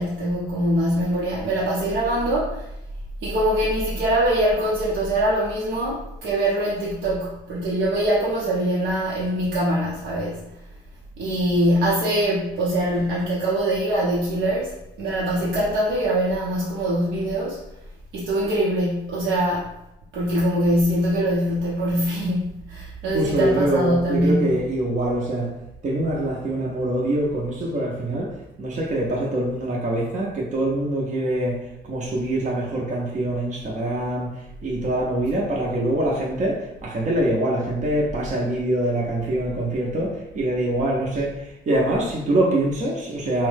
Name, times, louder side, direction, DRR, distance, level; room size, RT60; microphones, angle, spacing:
voice 1, 0.0-2.7 3.2-10.5 11.2-17.6 18.1-19.7 20.1-24.6, right 1 dB, 85° right, -7 dB, 0.7 m, -23 dB
voice 2, 23.1-25.5 25.8-43.5, right 1 dB, 40° right, -3 dB, 0.6 m, -24 dB
2.7 x 2.1 x 3.2 m, 0.88 s
cardioid pair, 90°, 20 cm